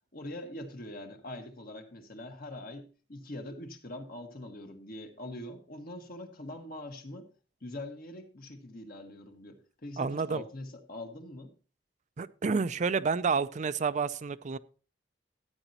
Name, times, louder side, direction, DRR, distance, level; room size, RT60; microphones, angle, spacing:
voice 1, 0.1-7.3 7.6-11.5, left 1 dB, 55° left, 1.6 m, -43 dB
voice 2, 10.0-10.4 12.2-14.6, right 5 dB, 40° right, 0.4 m, -29 dB
14.0 x 9.0 x 2.8 m
head